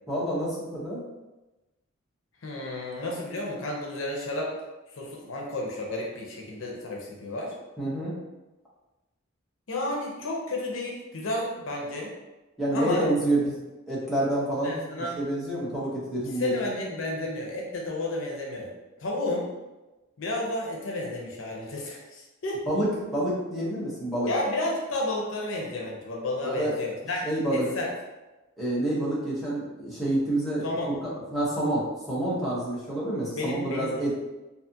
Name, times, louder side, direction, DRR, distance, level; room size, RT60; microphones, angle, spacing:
voice 1, 0.1-1.0 7.8-8.2 12.6-13.6 13.9-14.8 15.2-16.5 22.7-24.3 26.4-26.7 27.2-27.7 28.6-34.1, right 1 dB, ahead, -9 dB, 0.7 m, -28 dB
voice 2, 2.4-4.5 4.9-7.5 9.7-12.1 12.7-13.1 14.6-15.2 16.4-18.7 19.0-19.5 20.2-22.6 24.3-27.9 30.6-30.9 33.4-34.1, left 2 dB, 65° left, -1 dB, 0.5 m, -32 dB
2.7 x 2.4 x 2.6 m, 1.1 s
head